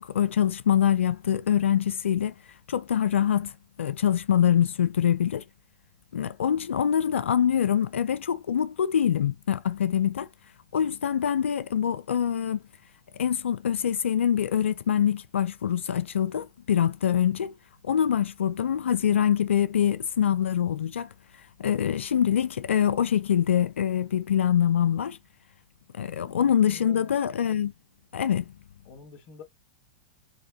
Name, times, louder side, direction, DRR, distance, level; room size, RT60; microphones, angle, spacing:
voice 1, 0.0-2.3 2.7-5.4 6.1-10.3 10.7-12.6 13.2-17.5 17.8-21.1 21.6-25.2 25.9-27.7 28.1-28.4, left 9 dB, 85° left, 0.4 m, -24 dB
voice 2, 26.2-27.2 28.8-29.4, left 4 dB, 45° left, 1.9 m, -48 dB
4.7 x 3.4 x 3.0 m
hypercardioid pair, 105°, 6 cm